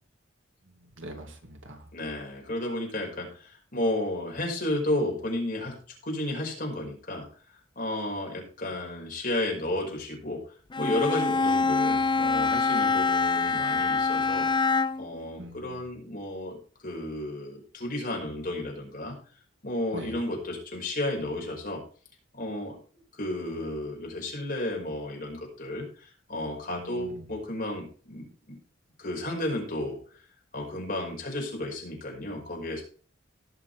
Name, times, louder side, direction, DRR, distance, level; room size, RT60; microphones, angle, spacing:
voice 1, 1.0-1.8 15.4-15.8 19.9-20.2 26.7-27.3, right 1 dB, 80° right, 3 dB, 2.7 m, -43 dB
voice 2, 1.9-5.7 6.0-7.2 7.8-10.4 10.8-14.5 15.0-16.6 16.8-19.1 19.6-21.8 22.3-22.8 23.2-25.8 26.3-28.6 29.0-30.0 30.5-32.8, left 1 dB, 45° left, -1 dB, 5.3 m, -32 dB
Bowed string instrument, 10.7-15.2, left 4 dB, 25° left, 0.4 m, -25 dB
18.0 x 7.0 x 3.4 m, 0.41 s
head